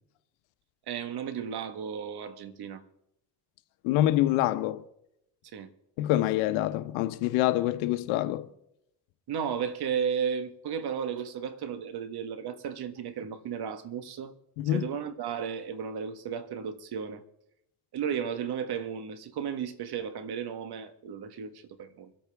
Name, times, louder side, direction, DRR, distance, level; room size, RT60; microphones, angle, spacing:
voice 1, 0.9-2.8 5.5-5.7 9.3-14.3 14.6-17.2 17.9-22.1, right 7 dB, 55° right, 1.5 m, -34 dB
voice 2, 3.8-4.8 6.0-8.5 14.6-14.9, left 14 dB, 80° left, 1.0 m, -26 dB
25.0 x 8.7 x 3.5 m
supercardioid pair, 85°, 47 cm